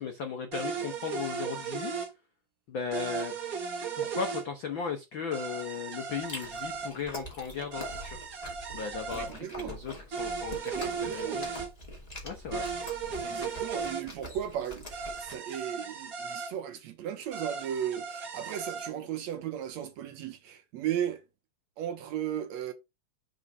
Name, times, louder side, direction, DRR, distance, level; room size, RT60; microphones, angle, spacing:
voice 1, 0.0-1.9 2.7-3.3 4.0-8.2 8.7-9.3 9.5-11.5 12.2-12.7 13.0-13.4, left 6 dB, 90° left, 1.0 m, -36 dB
sound 1, 0.5-2.1 2.9-4.4 5.3-6.9 7.7-9.3 10.1-11.7 12.5-14.0 14.9-16.5 17.3-18.9, right 5 dB, 55° right, 1.0 m, -36 dB
Chewing mastication, 6.1-15.4, left 1 dB, 15° left, 1.5 m, -44 dB
voice 2, 9.1-9.8 10.7-11.4 13.2-21.2 21.8-22.7, right 10 dB, 70° right, 1.8 m, -36 dB
6.4 x 3.9 x 5.3 m
omnidirectional pair, 3.7 m